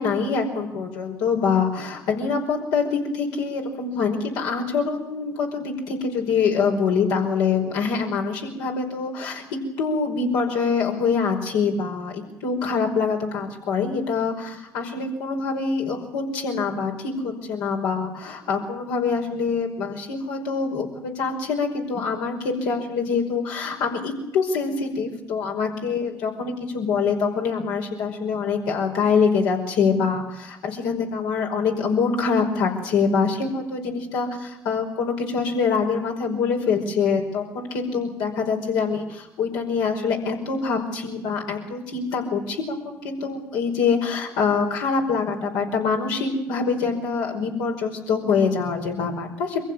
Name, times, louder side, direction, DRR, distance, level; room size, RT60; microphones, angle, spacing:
voice 1, 0.0-49.6, left 5 dB, 85° left, 1 dB, 5.3 m, -25 dB
25.5 x 15.5 x 8.9 m, 0.91 s
supercardioid pair, 65°, 7 cm